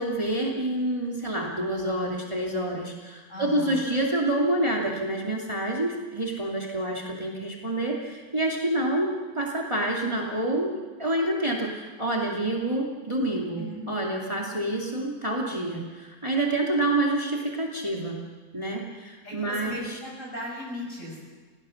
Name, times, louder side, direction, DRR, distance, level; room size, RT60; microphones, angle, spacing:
voice 1, 0.0-18.2 18.5-20.0, right 1 dB, 30° right, -2 dB, 0.5 m, -28 dB
voice 2, 3.3-3.8 13.6-13.8 19.2-21.2, left 1 dB, 15° left, -2 dB, 7.6 m, -37 dB
28.5 x 18.0 x 6.5 m, 1.4 s
omnidirectional pair, 5.4 m